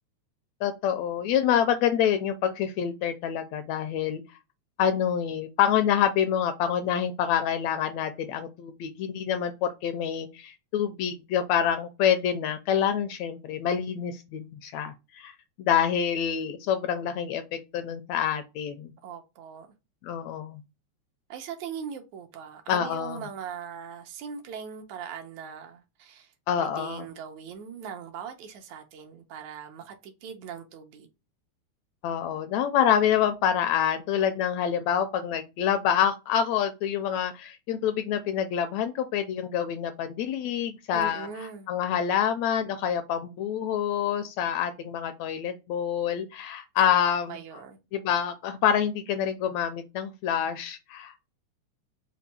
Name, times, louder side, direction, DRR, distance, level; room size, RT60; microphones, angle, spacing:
voice 1, 0.6-4.2 4.8-15.3 15.6-18.9 20.0-20.6 22.7-23.3 26.5-27.1 32.0-41.3 41.7-47.4 47.9-51.2, left 9 dB, 80° left, 1.6 m, -27 dB
voice 2, 19.0-19.7 21.3-31.1 40.9-41.7 46.8-47.0 47.3-47.8, right 7 dB, 80° right, 2.0 m, -40 dB
5.3 x 2.2 x 4.1 m
omnidirectional pair, 3.4 m